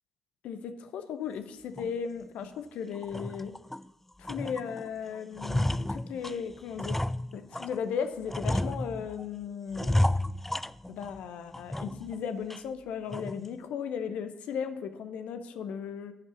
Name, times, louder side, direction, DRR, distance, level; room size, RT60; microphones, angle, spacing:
voice 1, 0.4-3.5 4.2-7.0 7.3-10.0 10.9-16.1, left 7 dB, 60° left, 9 dB, 0.9 m, -36 dB
sound 1, 1.8-1.9 2.4-2.5 3.0-3.9 4.2-4.9 5.2-7.8 8.3-9.2 9.7-11.2 11.5-12.2 12.5-12.6 13.1-13.5, left 1 dB, 10° left, 0.3 m, -31 dB
11.5 x 5.4 x 6.9 m, 0.88 s
figure-of-eight pair, 40°, 3 cm